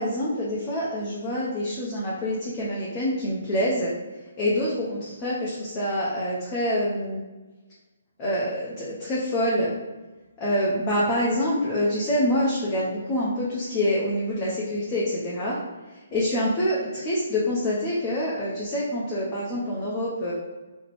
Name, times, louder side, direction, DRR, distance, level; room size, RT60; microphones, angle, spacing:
voice 1, 0.0-3.9 4.4-7.2 8.2-9.7 10.4-15.6 16.1-20.3, left 1 dB, 25° left, -7 dB, 0.7 m, -26 dB
3.6 x 2.1 x 3.2 m, 1.2 s
figure-of-eight pair, 140°, 0 cm